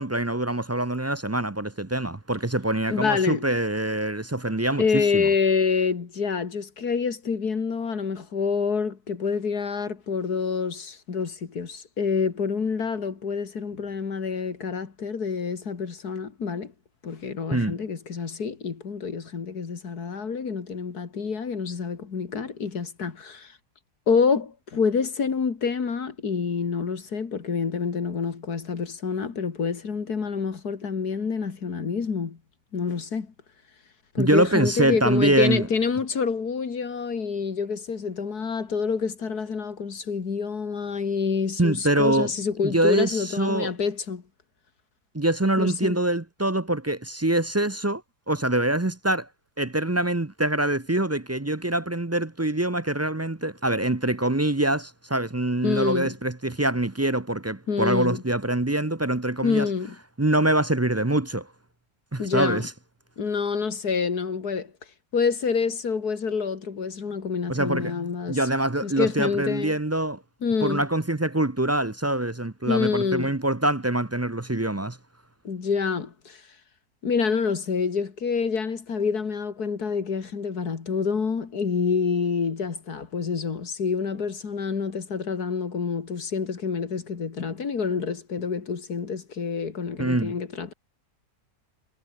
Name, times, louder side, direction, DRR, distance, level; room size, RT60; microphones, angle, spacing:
voice 1, 0.0-5.3 17.5-17.8 34.2-35.7 41.6-42.3 42.6-43.7 45.1-48.0 48.3-49.3 49.6-59.7 60.2-61.5 62.1-62.7 67.5-67.9 68.3-70.2 70.6-75.0 90.0-90.3, right 1 dB, 15° right, 0.6 m, -24 dB
voice 2, 2.9-3.4 4.8-16.7 17.0-23.6 24.1-32.4 32.7-33.3 34.1-44.2 45.6-46.0 55.6-56.2 57.7-58.2 59.4-60.0 62.2-62.7 63.2-64.7 65.1-68.4 68.8-69.7 70.4-70.9 72.7-73.3 75.4-76.4 77.0-90.7, left 5 dB, 85° left, 2.7 m, -27 dB
omnidirectional pair, 1.6 m